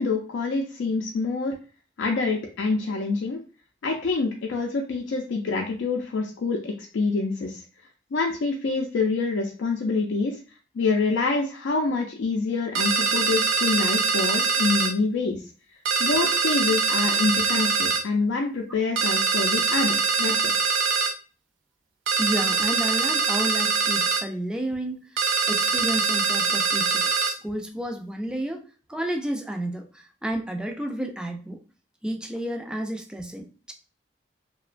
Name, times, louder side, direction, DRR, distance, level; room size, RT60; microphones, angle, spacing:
voice 1, 0.0-1.5 2.0-3.4 3.8-7.6 8.1-10.4 10.7-15.4 16.0-20.5, left 3 dB, 80° left, 1 dB, 0.4 m, -26 dB
sound 1, 12.8-14.9 15.9-18.0 19.0-21.2 22.1-24.3 25.2-27.4, right 5 dB, 90° right, 0.4 m, -23 dB
voice 2, 22.2-25.2 25.5-31.6 32.0-33.7, right 1 dB, 5° right, 4 dB, 0.3 m, -31 dB
2.9 x 2.1 x 2.4 m, 0.37 s
head